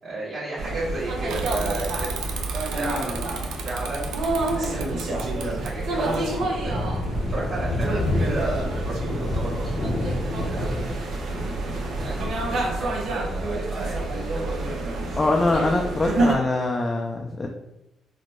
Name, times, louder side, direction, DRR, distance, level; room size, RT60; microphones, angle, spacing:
voice 1, 0.0-2.4 2.7-4.1 4.5-11.2 12.0-15.2, right 2 dB, 45° right, -9 dB, 1.2 m, -34 dB
sound 1, 0.6-16.3, right 2 dB, 70° right, 0.8 m, -28 dB
Bicycle / Mechanisms, 1.3-6.7, right 5 dB, 85° right, 0.4 m, -35 dB
Thunder, 5.3-14.5, left 1 dB, 55° left, 0.7 m, -30 dB
voice 2, 15.2-17.5, left 2 dB, 25° left, 2 dB, 0.4 m, -23 dB
4.1 x 2.1 x 3.1 m, 0.87 s
cardioid pair, 90°, 0 cm